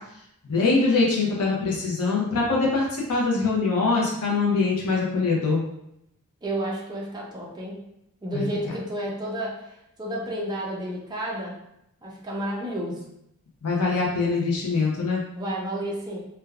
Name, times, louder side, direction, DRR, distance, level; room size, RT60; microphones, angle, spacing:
voice 1, 0.4-5.6 8.3-8.4 13.6-15.2, left 3 dB, 80° left, -3 dB, 0.6 m, -23 dB
voice 2, 6.4-7.8 8.2-11.6 12.0-13.0 15.3-16.2, right 1 dB, 20° right, -3 dB, 0.4 m, -31 dB
3.3 x 2.2 x 2.3 m, 0.79 s
head